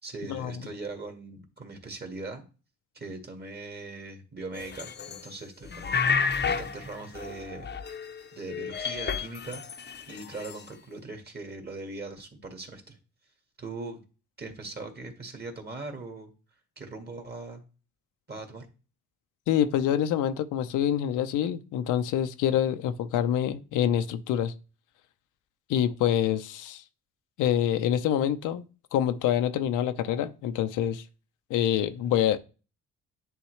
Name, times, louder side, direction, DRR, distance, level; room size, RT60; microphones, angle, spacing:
voice 1, 0.0-2.4 2.9-6.2 6.5-7.7 8.3-9.6 10.1-13.0 13.6-14.0 14.4-16.3 16.8-17.6 18.3-18.7, right 3 dB, 35° right, 1.8 m, -40 dB
sound 1, 4.6-5.3 5.7-8.2 8.5-10.6, left 6 dB, 35° left, 0.7 m, -31 dB
voice 2, 19.5-24.5 25.7-26.8 27.4-28.6 28.9-31.0 31.5-32.4, left 10 dB, 90° left, 0.7 m, -26 dB
10.0 x 3.6 x 3.2 m
cardioid pair, 90°, 30 cm